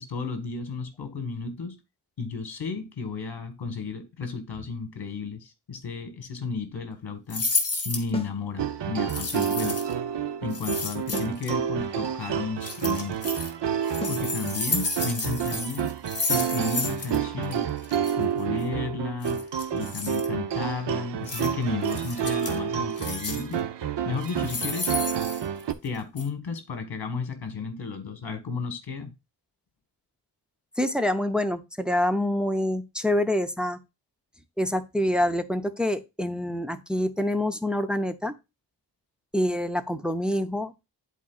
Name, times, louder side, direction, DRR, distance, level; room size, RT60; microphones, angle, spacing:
voice 1, 0.0-1.8 2.2-7.5 7.8-9.8 10.4-13.2 14.1-15.9 16.3-17.7 18.1-19.5 19.7-23.6 24.0-24.9 25.8-29.1, left 4 dB, 60° left, 1.6 m, -33 dB
sound 1, 7.3-8.1 9.1-9.9 10.5-11.5 12.6-13.5 13.8-17.2 17.4-17.5 17.8-18.1 19.2-20.3 21.3-21.5 21.8-22.6 23.0-23.5 24.2-25.9 26.2-26.3, left 3 dB, 35° left, 1.3 m, -31 dB
sound 2, 8.1-8.4 11.1-11.4 14.0-14.3, left 2 dB, 15° left, 1.2 m, -35 dB
sound 3, 8.6-25.7, right 8 dB, 75° right, 0.8 m, -29 dB
voice 2, 30.8-33.8 34.6-38.3 39.3-40.7, left 1 dB, ahead, 0.6 m, -26 dB
11.0 x 4.2 x 2.4 m
wide cardioid pair, 135°, 43 cm